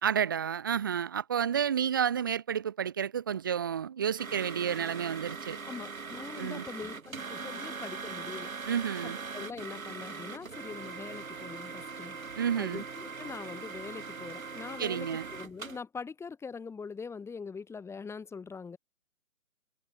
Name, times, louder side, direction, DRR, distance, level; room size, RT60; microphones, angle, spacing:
voice 1, 0.0-5.6 6.4-6.7 8.7-9.2 12.4-12.8 14.8-15.3, right 8 dB, 15° right, 0.7 m, -30 dB
sound 1, 4.2-15.8, right 4 dB, 65° right, 4.8 m, -41 dB
voice 2, 5.6-8.5 9.0-12.2 12.5-18.8, left 5 dB, 5° left, 6.4 m, -43 dB
figure-of-eight pair, 140°, 44 cm